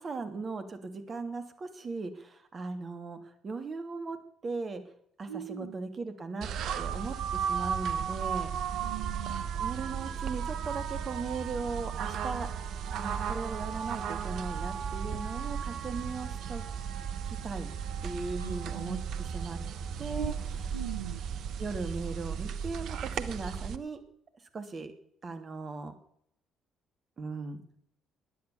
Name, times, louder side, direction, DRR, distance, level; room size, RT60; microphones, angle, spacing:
voice 1, 0.0-4.2 4.4-4.8 5.2-6.5 6.7-8.7 9.6-12.5 13.0-16.6 17.2-17.7 18.0-19.6 20.0-20.8 21.6-24.0 24.5-24.9 25.2-25.9 27.2-27.8, right 4 dB, 35° right, 8 dB, 3.0 m, -38 dB
voice 2, 5.3-5.7 8.6-9.5 18.4-19.0 20.2-20.3 20.7-21.2, right 9 dB, 80° right, 11 dB, 0.7 m, -41 dB
sound 1, 6.4-23.8, right 7 dB, 55° right, 1.1 m, -35 dB
19.0 x 10.5 x 7.1 m, 0.70 s
figure-of-eight pair, 45°, 0 cm